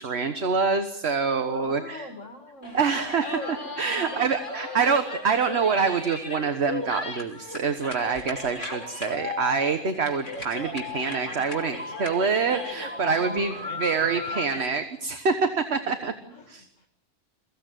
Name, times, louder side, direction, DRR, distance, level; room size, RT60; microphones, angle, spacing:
voice 1, 0.0-2.1 2.7-16.1 16.5-16.6, right 5 dB, 60° right, 7 dB, 1.5 m, -26 dB
voice 2, 1.5-2.8 3.9-4.4 13.1-13.8 16.2-16.9, left 2 dB, 90° left, 2 dB, 2.4 m, -44 dB
sound 1, 2.6-14.7, left 2 dB, 40° left, 3.2 m, -36 dB
23.0 x 16.0 x 9.2 m, 0.82 s
omnidirectional pair, 1.3 m